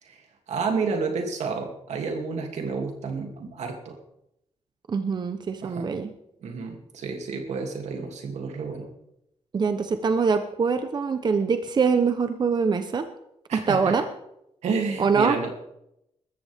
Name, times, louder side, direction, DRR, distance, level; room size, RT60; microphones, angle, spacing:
voice 1, 0.0-4.0 5.6-5.9 6.4-8.9 13.5-14.0 14.6-15.6, right 4 dB, 90° right, 3 dB, 2.8 m, -30 dB
voice 2, 4.9-6.1 9.5-13.1 13.5-14.0 15.0-15.4, right 5 dB, 40° right, 8 dB, 0.9 m, -23 dB
21.0 x 14.0 x 3.6 m, 0.80 s
wide cardioid pair, 135°, 11 cm